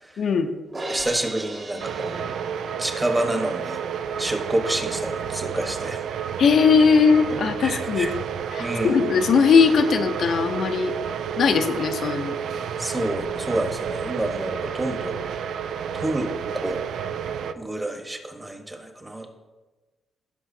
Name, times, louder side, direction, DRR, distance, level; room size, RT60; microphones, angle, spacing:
voice 1, 0.2-0.5 6.4-8.1 8.5-10.9 11.4-12.3, left 5 dB, 65° left, 6 dB, 0.7 m, -19 dB
Crash cymbal, 0.7-3.0, right 2 dB, 35° right, 1.6 m, -36 dB
voice 2, 0.9-2.4 2.8-3.8 4.2-6.0 7.3-8.1 8.6-9.0 12.8-15.2 15.9-16.8 17.6-19.3, right 1 dB, 15° right, 3 dB, 1.2 m, -28 dB
sound 1, 1.8-17.5, right 7 dB, 80° right, 0.4 m, -30 dB
16.0 x 6.0 x 2.8 m, 1.3 s
cardioid pair, 115°, 0 cm